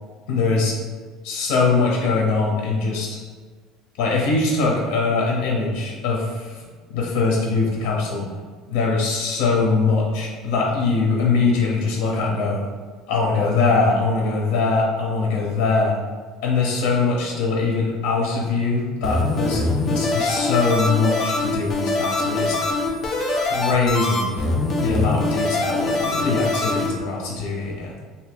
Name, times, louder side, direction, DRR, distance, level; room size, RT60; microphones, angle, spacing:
voice 1, 0.3-0.7 1.2-3.2 4.0-6.6 6.9-8.3 8.7-12.6 13.1-15.9 16.4-22.6 23.3-24.4 24.8-27.9, left 4 dB, 80° left, -2 dB, 0.8 m, -22 dB
sound 1, 19.0-26.9, left 2 dB, 25° left, 0.5 m, -23 dB
2.7 x 2.7 x 3.5 m, 1.5 s
cardioid pair, 180°, 0 cm